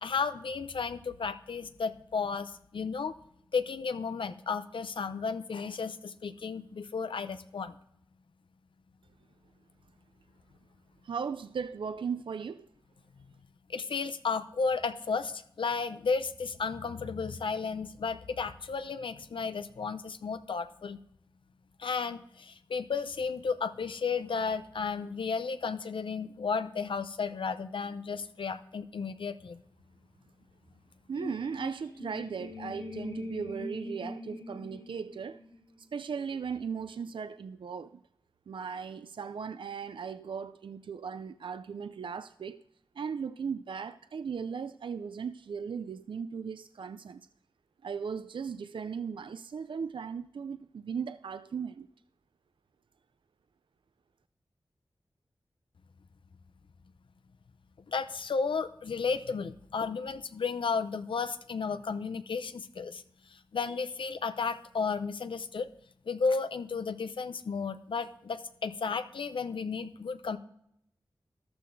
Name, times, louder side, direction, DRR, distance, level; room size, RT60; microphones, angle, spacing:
voice 1, 0.0-3.1 3.5-7.8 13.7-21.0 21.8-29.6 57.9-63.0 63.3-65.7 66.1-70.4, left 5 dB, 80° left, 0.6 m, -33 dB
voice 2, 11.0-12.7 31.1-35.4 35.8-38.0 38.5-42.6 43.0-47.3 47.8-51.9, right 6 dB, 75° right, 0.3 m, -37 dB
sound 1, 31.1-36.0, left 2 dB, 55° left, 2.0 m, -43 dB
14.0 x 12.0 x 2.6 m
cardioid pair, 40°, 9 cm